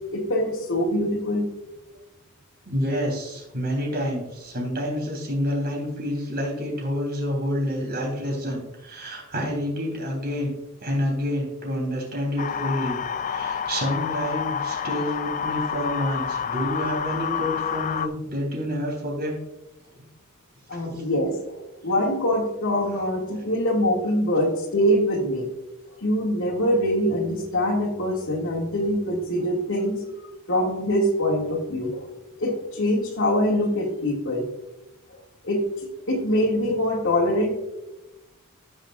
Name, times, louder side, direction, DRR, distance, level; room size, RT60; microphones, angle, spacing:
voice 1, 0.1-1.5 20.7-21.6 21.8-25.5 26.0-30.0 30.5-32.1 32.4-34.5 35.4-35.6 36.1-37.5, equal, 60° left, 0 dB, 2.1 m, -24 dB
voice 2, 2.6-10.5 10.8-19.4 19.9-20.0 20.7-21.0, equal, 45° right, 0 dB, 3.3 m, -28 dB
sound 1, 12.4-18.1, left 7 dB, 35° left, 0.4 m, -28 dB
16.0 x 6.6 x 2.4 m, 0.99 s
head